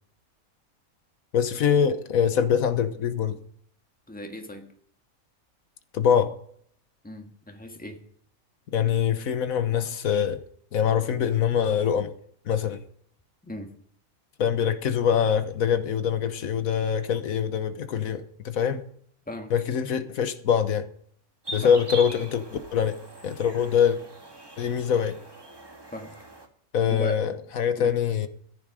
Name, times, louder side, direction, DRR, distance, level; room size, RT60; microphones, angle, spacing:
voice 1, 1.3-3.4 5.9-6.3 8.7-10.4 10.7-12.1 12.5-12.8 14.4-18.8 19.5-20.9 21.5-22.4 22.7-24.0 24.6-25.2 26.7-28.3, left 8 dB, 85° left, 1.5 m, -24 dB
voice 2, 4.1-4.7 7.0-8.0 13.4-13.7 19.3-19.5 21.6-21.8 25.9-26.1 26.9-27.2 27.8-27.9, left 1 dB, 5° left, 1.6 m, -37 dB
sound 1, 21.4-26.5, right 1 dB, 20° right, 1.7 m, -41 dB
14.5 x 11.0 x 5.0 m
omnidirectional pair, 1.4 m